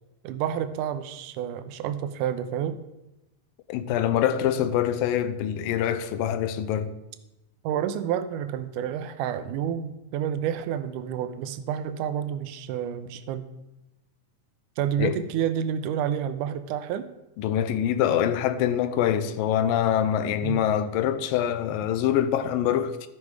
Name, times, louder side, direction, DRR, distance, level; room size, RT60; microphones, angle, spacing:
voice 1, 0.2-2.8 7.6-13.5 14.8-17.1 20.4-20.6, right 9 dB, 80° right, 1.9 m, -29 dB
voice 2, 3.7-6.9 15.0-15.2 17.4-23.1, left 10 dB, 90° left, 2.4 m, -25 dB
13.0 x 6.1 x 4.7 m
omnidirectional pair, 4.0 m